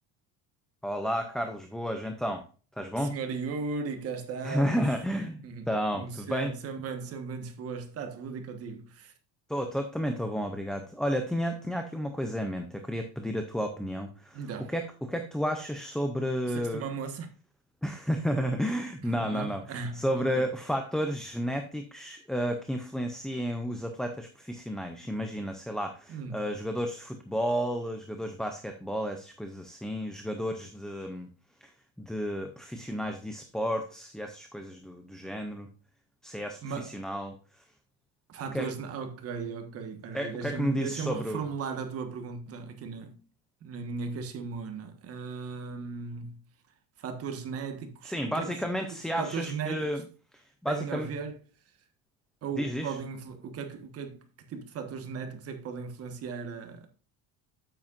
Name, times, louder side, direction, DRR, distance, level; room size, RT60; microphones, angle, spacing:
voice 1, 0.8-2.5 2.8-3.1 4.4-5.4 5.7-6.5 9.5-14.4 14.7-16.8 17.8-19.6 19.9-31.3 31.6-31.7 32.0-35.7 36.2-37.4 38.5-38.7 40.1-41.4 48.0-50.0 50.3-51.1 52.6-53.0, equal, ahead, 0.4 m, -32 dB
voice 2, 2.9-4.9 5.4-9.1 14.3-14.7 16.5-17.3 19.0-20.5 26.1-26.5 36.6-37.0 38.3-43.2 43.6-46.4 47.0-48.6 49.1-50.0 50.7-51.3 52.4-56.9, right 5 dB, 35° right, 1.4 m, -37 dB
8.7 x 8.7 x 2.5 m
cardioid pair, 165°, 39 cm